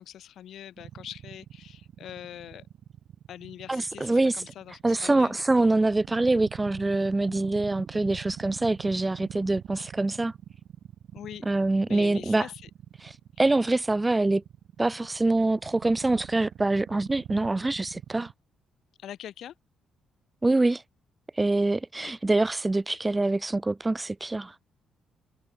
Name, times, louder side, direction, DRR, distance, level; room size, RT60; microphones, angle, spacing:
voice 1, 0.0-2.6 3.3-5.3 11.1-11.4 11.9-12.5 19.0-19.5 22.0-22.1, left 11 dB, 70° left, 0.5 m, -43 dB
sound 1, 0.8-18.3, right 10 dB, 70° right, 1.0 m, -44 dB
voice 2, 3.7-4.4 4.8-10.3 11.5-12.5 13.0-14.4 14.8-18.3 20.4-20.8 21.3-24.6, right 2 dB, 15° right, 0.3 m, -25 dB
cardioid pair, 90°, 0 cm